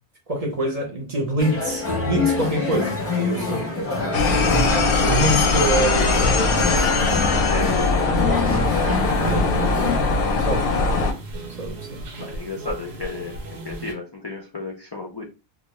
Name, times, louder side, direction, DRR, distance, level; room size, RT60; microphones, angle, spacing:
voice 1, 0.3-3.6 5.0-7.0 8.2-8.5 10.0-10.6 11.6-12.0, right 1 dB, 40° right, 1 dB, 0.7 m, -26 dB
sound 1, 1.4-10.0, left 3 dB, 15° left, 0.7 m, -26 dB
voice 2, 3.3-3.7 7.3-8.7 9.8-10.6 12.2-13.3 13.6-15.3, left 3 dB, 40° left, -1 dB, 0.3 m, -34 dB
sound 2, 4.1-11.1, left 3 dB, 65° left, 0.7 m, -20 dB
sound 3, 8.6-13.9, right 2 dB, 75° right, 0.9 m, -34 dB
2.3 x 2.2 x 2.9 m, 0.30 s
omnidirectional pair, 1.1 m